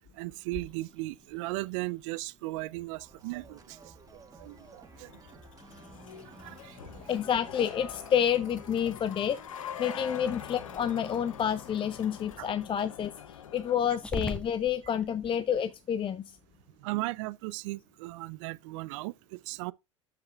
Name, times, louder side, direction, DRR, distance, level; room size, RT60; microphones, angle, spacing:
voice 1, 0.2-3.9 4.4-5.1 6.2-7.1 9.8-10.0 12.4-12.5 16.8-19.7, right 21 dB, 70° right, 0.5 m, -37 dB
Growling, 0.5-15.3, left 2 dB, 5° left, 1.1 m, -47 dB
sound 1, 3.0-10.2, right 4 dB, 20° right, 1.7 m, -54 dB
sound 2, 4.5-13.8, left 9 dB, 85° left, 0.7 m, -45 dB
voice 2, 7.1-9.4 9.8-16.4, left 9 dB, 30° left, 0.6 m, -29 dB
9.6 x 7.6 x 2.3 m
hypercardioid pair, 75°, 17 cm